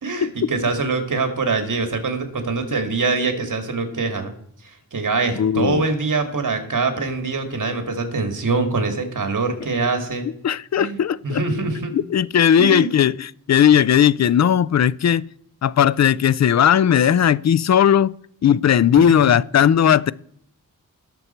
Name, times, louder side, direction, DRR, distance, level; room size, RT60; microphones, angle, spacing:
voice 1, 0.0-4.3 4.9-10.3 10.8-11.0 11.2-11.9 12.6-12.9 19.0-19.2, right 4 dB, 65° right, 2.3 m, -23 dB
voice 2, 5.4-5.8 10.4-11.4 11.9-15.2 15.6-18.1 18.4-20.1, left 9 dB, 50° left, 0.4 m, -17 dB
18.0 x 7.0 x 4.4 m
wide cardioid pair, 90°, 34 cm